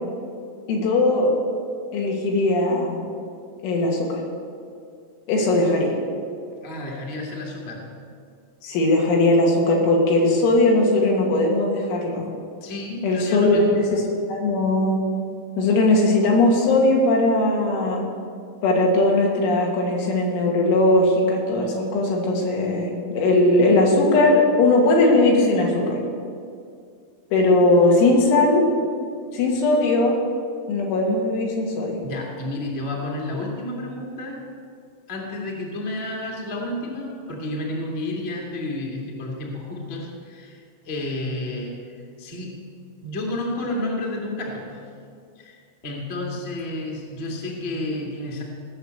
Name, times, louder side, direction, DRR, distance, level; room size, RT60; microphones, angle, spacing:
voice 1, 0.7-1.3 1.9-3.0 3.6-4.2 5.3-5.9 8.6-12.3 13.0-13.6 13.9-14.0 14.3-15.0 15.6-18.1 18.6-26.0 27.3-28.7 29.3-30.2 30.7-32.0, left 2 dB, 90° left, -1 dB, 4.6 m, -19 dB
voice 2, 6.6-7.8 12.6-13.7 32.0-34.4 35.1-41.8 42.2-42.6 43.0-44.8 45.3-48.4, left 1 dB, 45° left, -1 dB, 0.7 m, -31 dB
17.0 x 6.6 x 8.2 m, 2.3 s
omnidirectional pair, 5.4 m